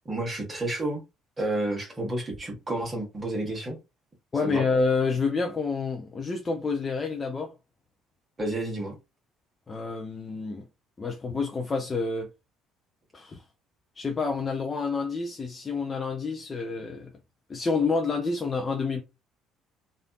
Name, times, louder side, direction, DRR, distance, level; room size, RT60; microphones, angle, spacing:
voice 1, 0.0-1.0 1.4-3.8 4.4-4.6 8.4-9.0, right 1 dB, 30° right, 1.4 m, -30 dB
voice 2, 4.3-7.5 9.7-10.7 11.0-12.3 13.1-13.4 14.0-17.1 17.5-19.0, left 4 dB, 30° left, 0.6 m, -28 dB
3.3 x 2.6 x 2.3 m
figure-of-eight pair, 55°, 0 cm